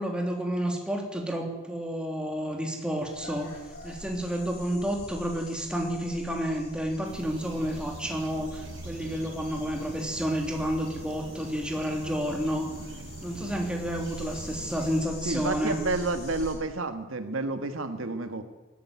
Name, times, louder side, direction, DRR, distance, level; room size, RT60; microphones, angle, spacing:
voice 1, 0.0-3.6 3.8-12.6 13.2-15.8, equal, 5° right, 1 dB, 3.2 m, -30 dB
sound 1, 2.9-16.5, left 1 dB, 55° left, 7.7 m, -45 dB
sound 2, 7.0-15.0, right 2 dB, 65° right, 1.4 m, -43 dB
voice 2, 15.3-18.4, right 2 dB, 85° right, 8 dB, 1.6 m, -30 dB
19.5 x 14.0 x 9.5 m, 1.1 s
head